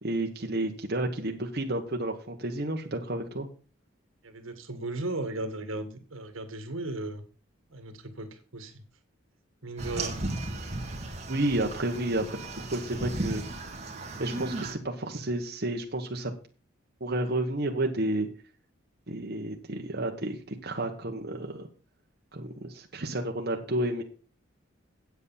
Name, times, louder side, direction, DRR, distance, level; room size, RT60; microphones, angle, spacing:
voice 1, 0.0-3.5 11.3-13.4 14.2-16.3 17.0-18.3 19.1-21.7 22.3-24.0, right 1 dB, 50° right, 2 dB, 1.1 m, -31 dB
voice 2, 4.2-7.2 7.7-8.8 9.6-10.2, right 2 dB, 80° right, 9 dB, 1.7 m, -36 dB
sound 1, 9.8-14.7, right 2 dB, 30° right, 2.0 m, -35 dB
8.3 x 8.1 x 5.5 m, 0.38 s
head